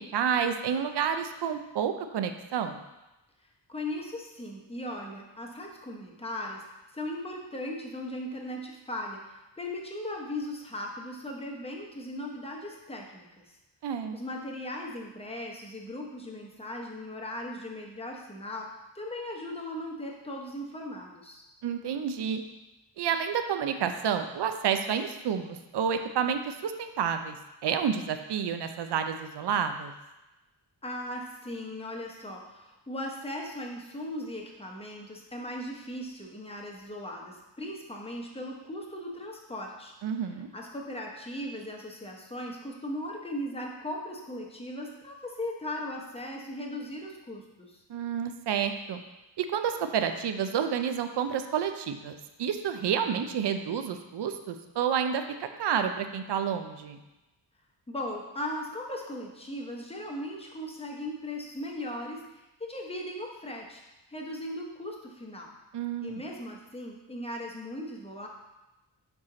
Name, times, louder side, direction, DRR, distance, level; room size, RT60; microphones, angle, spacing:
voice 1, 0.1-2.8 13.8-14.2 21.6-22.4 23.0-27.4 27.6-29.9 40.0-40.5 47.9-49.0 49.4-57.0 65.7-66.2, right 7 dB, 65° right, 8 dB, 0.5 m, -29 dB
voice 2, 3.7-6.6 6.9-13.5 14.1-21.4 30.8-39.9 40.5-47.8 57.9-62.2 62.6-63.8 64.1-65.6 66.0-68.3, left 1 dB, 15° left, -1 dB, 0.8 m, -38 dB
5.7 x 4.6 x 3.7 m, 1.0 s
wide cardioid pair, 140°, 46 cm